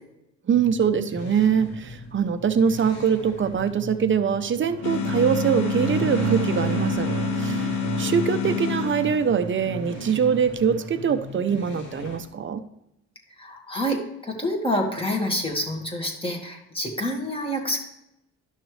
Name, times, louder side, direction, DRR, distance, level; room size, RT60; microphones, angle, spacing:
Mustang Ehxaust, 0.5-12.2, left 2 dB, 60° left, 2.1 m, -41 dB
voice 1, 0.5-7.1 7.4-12.6, right 7 dB, 40° right, 10 dB, 0.8 m, -23 dB
sound 1, 4.6-11.2, right 11 dB, 60° right, 0.4 m, -31 dB
sound 2, 4.8-9.5, left 12 dB, 80° left, 0.5 m, -28 dB
voice 2, 13.4-17.8, equal, 20° left, 1 dB, 2.0 m, -27 dB
11.5 x 6.1 x 3.3 m, 0.84 s
cardioid pair, 90°, 30 cm